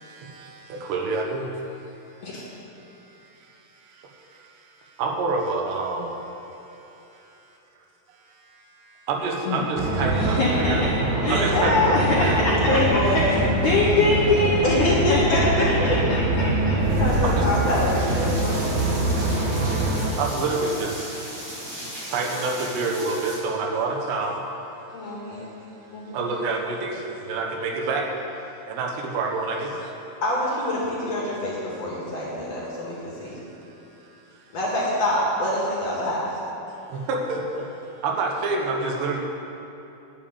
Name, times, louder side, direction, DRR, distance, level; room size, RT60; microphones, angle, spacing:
voice 1, 0.0-1.5 2.8-7.3 8.2-10.8 11.3-12.6 17.2-17.5 19.0-24.4 25.3-25.5 26.1-28.1 28.7-29.9 33.2-33.4 34.3-34.5 36.9-37.7 38.0-39.2, right 3 dB, 80° right, 1 dB, 3.4 m, -29 dB
sound 1, 9.8-20.1, right 2 dB, 60° right, 2.1 m, -24 dB
voice 2, 10.1-10.9 11.2-12.8 13.3-16.8, left 3 dB, 90° left, -3 dB, 1.6 m, -24 dB
voice 3, 12.7-13.4 14.6-16.0 17.0-18.7 20.5-20.6 24.9-25.4 25.9-26.2 30.2-33.4 34.5-36.3, left 1 dB, 45° left, -5 dB, 2.5 m, -25 dB
sound 2, 16.8-23.4, right 1 dB, 30° right, 2.8 m, -37 dB
11.0 x 7.3 x 8.8 m, 3.0 s
omnidirectional pair, 4.9 m